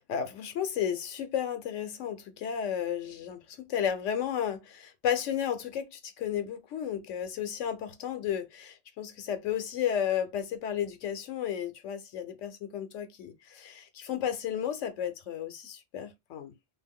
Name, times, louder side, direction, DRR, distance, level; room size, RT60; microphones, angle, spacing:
voice 1, 0.1-16.6, left 9 dB, 85° left, 1.0 m, -33 dB
2.5 x 2.1 x 3.5 m
omnidirectional pair, 1.2 m